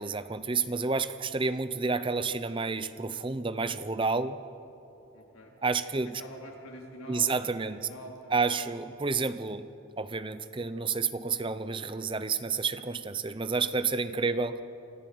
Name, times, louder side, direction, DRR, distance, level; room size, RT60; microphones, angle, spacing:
voice 1, 0.0-4.4 5.6-6.1 7.1-7.8 8.3-9.7 10.0-14.6, right 4 dB, 25° right, 12 dB, 0.6 m, -30 dB
voice 2, 5.1-5.5 6.0-8.4 8.7-8.8 14.2-14.4, equal, 90° left, 0 dB, 3.7 m, -47 dB
26.5 x 14.5 x 7.9 m, 2.7 s
head